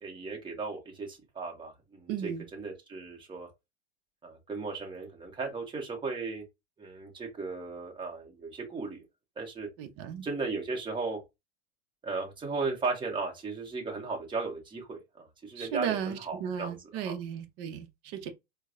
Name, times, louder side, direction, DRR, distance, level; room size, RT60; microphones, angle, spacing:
voice 1, 0.0-3.5 4.2-6.4 6.8-9.0 9.4-9.7 10.2-11.2 12.0-17.2, right 4 dB, 15° right, 1.3 m, -36 dB
voice 2, 2.1-2.4 9.8-10.3 15.6-18.3, right 8 dB, 40° right, 0.9 m, -35 dB
4.5 x 2.3 x 2.6 m
hypercardioid pair, 120°, 35 cm